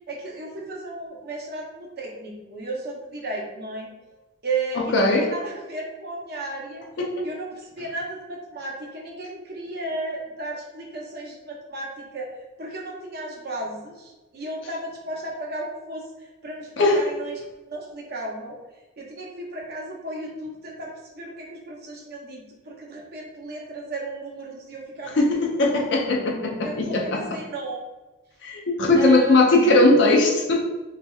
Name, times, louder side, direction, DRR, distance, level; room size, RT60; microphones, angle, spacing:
voice 1, 0.1-3.9 4.4-6.8 7.2-12.3 12.6-18.6 19.0-25.7 26.6-27.8 28.9-29.4, right 2 dB, 45° right, -2 dB, 0.6 m, -34 dB
voice 2, 4.8-5.3 7.0-7.3 16.8-17.0 25.2-27.2 28.4-30.7, left 2 dB, 55° left, 1 dB, 0.4 m, -19 dB
3.1 x 2.7 x 2.3 m, 1.1 s
head